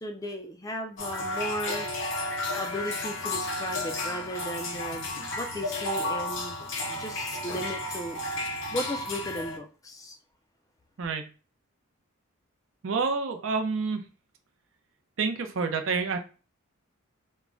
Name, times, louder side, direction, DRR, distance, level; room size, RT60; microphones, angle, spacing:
voice 1, 0.0-1.9 2.5-5.1 5.3-6.6 6.9-8.2 8.7-10.1, equal, 15° left, 4 dB, 0.3 m, -36 dB
sound 1, 1.0-9.6, left 2 dB, 60° left, 0.6 m, -32 dB
voice 2, 11.0-11.3 12.8-14.0 15.2-16.2, right 4 dB, 65° right, 6 dB, 0.5 m, -28 dB
2.2 x 2.1 x 3.7 m, 0.35 s
head